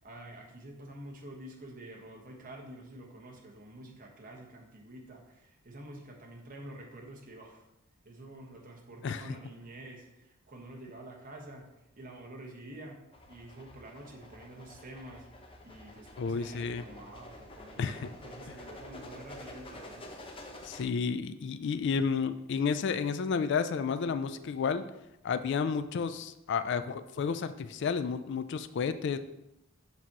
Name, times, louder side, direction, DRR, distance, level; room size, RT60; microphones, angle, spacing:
voice 1, 0.0-7.6 8.0-11.6 11.9-13.0 13.3-15.2 15.6-20.0, right 1 dB, 40° right, 0 dB, 1.2 m, -48 dB
voice 2, 9.0-9.4 16.2-16.8 17.8-18.1 18.5-18.6 20.6-24.9 25.2-29.2, left 5 dB, 55° left, 12 dB, 0.3 m, -31 dB
sound 1, 13.1-20.8, left 1 dB, 25° left, 0.7 m, -49 dB
7.3 x 6.0 x 2.9 m, 0.90 s
head